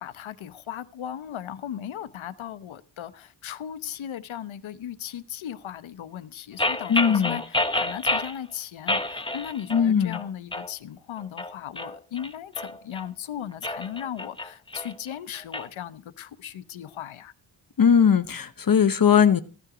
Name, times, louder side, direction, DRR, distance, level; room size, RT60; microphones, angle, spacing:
voice 1, 0.0-17.3, left 10 dB, 75° left, 1.0 m, -37 dB
sound 1, 6.6-8.4 8.9-9.9 10.1-10.7 11.2-13.0 13.5-15.7, left 2 dB, 10° left, 1.0 m, -29 dB
voice 2, 6.9-7.4 9.7-10.2 17.8-19.4, left 7 dB, 45° left, 0.9 m, -19 dB
15.5 x 9.8 x 4.9 m
cardioid pair, 85°, 47 cm